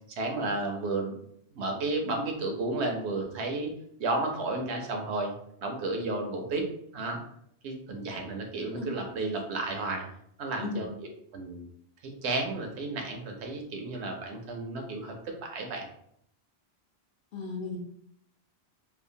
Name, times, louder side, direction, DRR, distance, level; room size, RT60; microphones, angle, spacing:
voice 1, 0.2-1.2 1.5-3.7 4.0-5.3 5.6-6.7 6.9-7.2 7.6-10.0 10.4-10.9 11.3-11.6 12.0-15.9, right 2 dB, 90° right, 3 dB, 0.9 m, -32 dB
voice 2, 17.3-17.8, left 4 dB, 65° left, -5 dB, 0.8 m, -34 dB
2.8 x 2.1 x 2.6 m, 0.70 s
omnidirectional pair, 1.1 m